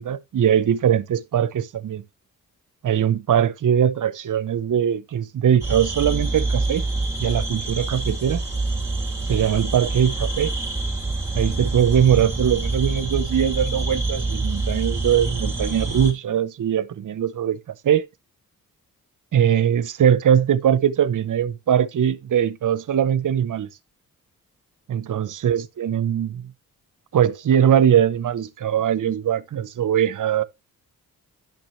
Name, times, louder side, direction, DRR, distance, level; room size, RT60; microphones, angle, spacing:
voice 1, 0.0-2.0 2.8-6.8 7.2-8.4 9.3-10.5 11.3-17.6 17.8-18.1 19.3-23.7 24.9-26.4 27.1-30.4, right 9 dB, 55° right, 0.7 m, -21 dB
sound 1, 5.6-16.1, right 3 dB, 10° right, 3.0 m, -26 dB
10.5 x 6.0 x 3.0 m
supercardioid pair, 50°, 37 cm